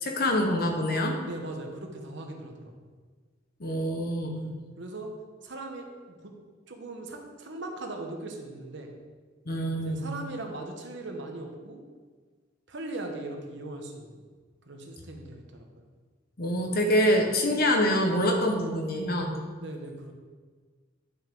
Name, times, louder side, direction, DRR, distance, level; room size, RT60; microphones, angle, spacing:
voice 1, 0.0-1.2 3.6-4.5 9.5-10.0 16.4-19.4, equal, 55° left, 2 dB, 1.1 m, -25 dB
voice 2, 1.2-2.7 4.4-5.1 5.4-6.3 6.7-9.0 9.8-11.8 12.7-14.2 14.7-15.7 19.6-20.1, right 2 dB, 70° right, 3 dB, 1.1 m, -39 dB
9.7 x 5.8 x 3.7 m, 1.5 s
head